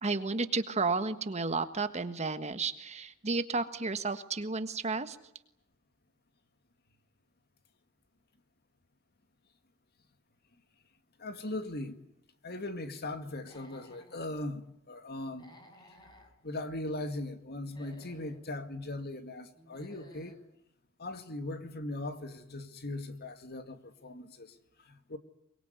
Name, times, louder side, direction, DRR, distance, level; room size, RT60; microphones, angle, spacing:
voice 1, 0.0-5.2, right 3 dB, 30° right, 1.5 m, -32 dB
voice 2, 11.2-12.0 12.4-15.5 16.4-20.4 21.0-25.2, left 2 dB, 50° left, 2.2 m, -39 dB
Human voice / Animal, 13.3-14.2 15.3-16.3 17.6-18.4 19.5-20.4, left 1 dB, 20° left, 6.6 m, -57 dB
23.5 x 23.0 x 9.5 m
head